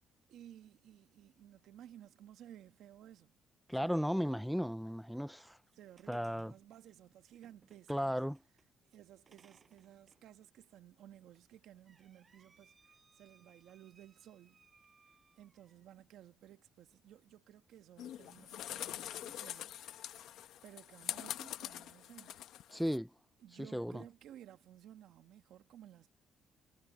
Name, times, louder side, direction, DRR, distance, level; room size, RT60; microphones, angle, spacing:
voice 1, 0.3-3.3 3.7-3.9 5.7-8.2 8.8-14.6 15.1-19.8 20.6-22.5 23.4-26.1, right 11 dB, 75° right, 1.4 m, -57 dB
voice 2, 3.7-5.6 6.1-6.5 7.9-8.4 22.7-23.1 23.6-24.0, equal, ahead, 0.4 m, -35 dB
sound 1, 5.6-8.7 9.3-10.3 10.6-10.7 11.3-16.0 18.2-18.4 18.8-19.7, right 5 dB, 30° right, 7.8 m, -68 dB
sound 2, 18.0-23.0, left 11 dB, 80° left, 1.0 m, -44 dB
cardioid pair, 135°, 0 cm